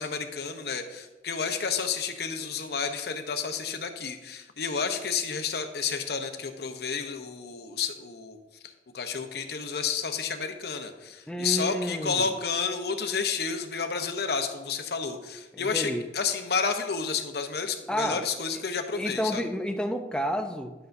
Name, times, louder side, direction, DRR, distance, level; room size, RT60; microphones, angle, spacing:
voice 1, 0.0-8.4 8.9-19.4, left 5 dB, 60° left, 6 dB, 0.8 m, -31 dB
voice 2, 11.3-12.3 15.6-16.0 17.9-18.2 19.0-20.7, equal, 5° left, 5 dB, 0.5 m, -30 dB
11.0 x 8.0 x 2.6 m, 1.1 s
head